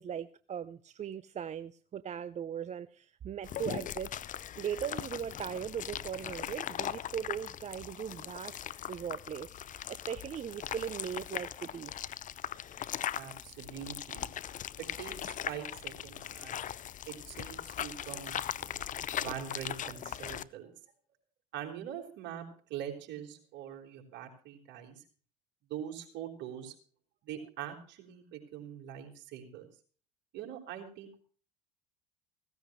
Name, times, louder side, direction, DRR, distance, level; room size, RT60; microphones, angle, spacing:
voice 1, 0.0-4.1 4.6-8.6 8.9-11.9, right 8 dB, 35° right, 0.7 m, -39 dB
sound 1, 3.4-20.4, left 10 dB, 40° left, 0.7 m, -40 dB
voice 2, 13.1-14.2 14.8-16.6 17.1-18.9 19.1-20.7 21.5-25.0 25.7-26.7 27.2-29.7 30.3-31.2, right 9 dB, 60° right, 4.4 m, -43 dB
16.5 x 15.5 x 3.1 m
hypercardioid pair, 75°, 21 cm